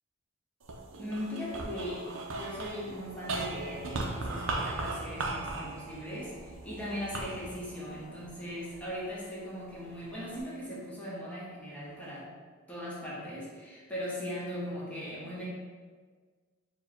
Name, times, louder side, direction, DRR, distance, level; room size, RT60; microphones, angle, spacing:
sound 1, 0.6-9.1 9.7-10.4, right 2 dB, 75° right, 0.5 m, -38 dB
voice 1, 1.0-2.1 2.3-12.3 12.7-15.4, equal, 5° left, -7 dB, 1.0 m, -39 dB
4.5 x 2.2 x 4.3 m, 1.5 s
head